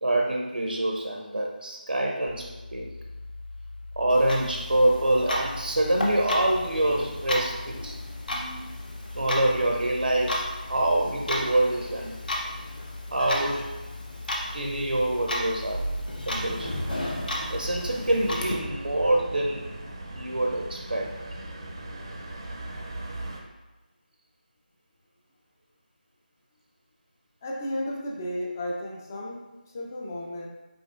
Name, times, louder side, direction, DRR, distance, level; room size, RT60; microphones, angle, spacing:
voice 1, 0.0-2.9 4.0-8.0 9.1-12.2 13.1-13.7 14.5-15.9 16.3-16.7 17.5-19.7 20.1-21.1, right 1 dB, 80° right, 0 dB, 0.6 m, -26 dB
sound 1, 2.3-19.1, left 3 dB, 80° left, 0.3 m, -41 dB
Clock, 4.1-18.5, left 1 dB, 60° left, 1.0 m, -34 dB
sound 2, 16.3-23.4, right 1 dB, 30° right, 0.6 m, -38 dB
voice 2, 27.4-30.5, left 1 dB, 20° left, -1 dB, 0.5 m, -33 dB
5.0 x 4.2 x 2.5 m, 1.1 s
figure-of-eight pair, 165°, 5 cm